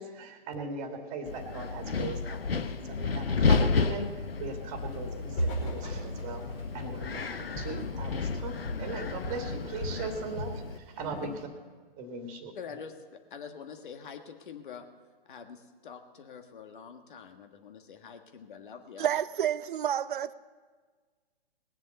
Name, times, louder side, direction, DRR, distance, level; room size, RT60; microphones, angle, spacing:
voice 1, 0.0-6.4 6.7-11.3 12.0-12.5, right 4 dB, 25° right, 2.1 m, -39 dB
Wind, 1.3-10.8, left 4 dB, 80° left, 0.9 m, -32 dB
Walk footsteps, 4.8-5.1 5.4-8.4 8.7-9.0 9.2-10.6 11.0-11.4, equal, 35° left, 4.7 m, -36 dB
voice 2, 12.5-14.8 15.3-19.1, left 6 dB, 60° left, 1.7 m, -45 dB
voice 3, 19.0-20.3, right 10 dB, 60° right, 0.7 m, -29 dB
20.0 x 7.4 x 6.7 m
figure-of-eight pair, 125°, 29 cm